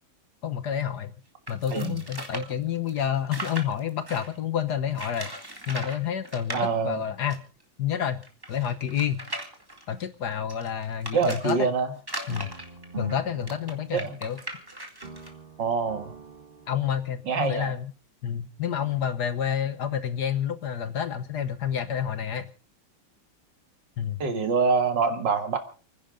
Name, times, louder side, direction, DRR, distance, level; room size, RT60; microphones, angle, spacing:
voice 1, 0.4-1.1 1.5-5.3 5.7-7.4 7.8-8.2 8.5-9.2 9.9-11.6 12.3-12.5 13.0-14.4 16.7-17.9 18.2-22.5 24.0-24.2, left 9 dB, 60° left, 11 dB, 1.4 m, -29 dB
sound 1, 1.5-4.4 4.9-6.0 6.2-6.6 7.3-7.4 7.6-7.7 8.2-11.5 12.0-15.3, right 1 dB, 10° right, 2.0 m, -38 dB
voice 2, 6.5-7.0 11.1-11.9 13.9-14.2 15.6-16.2 17.3-17.7 24.2-25.6, right 5 dB, 60° right, 7 dB, 2.4 m, -25 dB
sound 2, 12.3-14.6 15.0-17.3, right 4 dB, 30° right, 1.5 m, -43 dB
29.5 x 10.5 x 3.8 m, 0.37 s
omnidirectional pair, 2.2 m